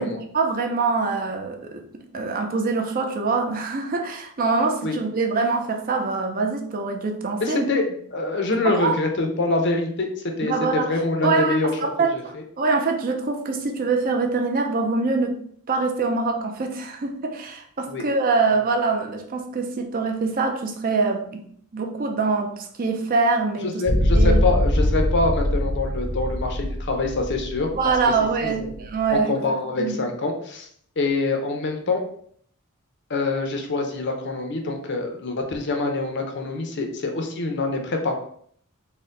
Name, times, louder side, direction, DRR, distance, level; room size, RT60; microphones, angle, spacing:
voice 1, 0.3-7.6 8.6-8.9 10.4-10.8 11.2-11.6 12.0-12.1 12.6-15.4 15.7-21.4 21.7-23.8 24.1-24.4 27.7-29.4 29.8-29.9, right 4 dB, 40° right, 4 dB, 0.5 m, -24 dB
voice 2, 7.4-12.4 17.9-18.0 23.6-27.7 28.4-28.7 29.1-30.7 31.0-32.0 33.1-38.1, left 3 dB, 50° left, 3 dB, 0.6 m, -25 dB
sound 1, 23.8-29.1, left 1 dB, 5° left, 0.7 m, -23 dB
4.2 x 2.2 x 3.8 m, 0.62 s
head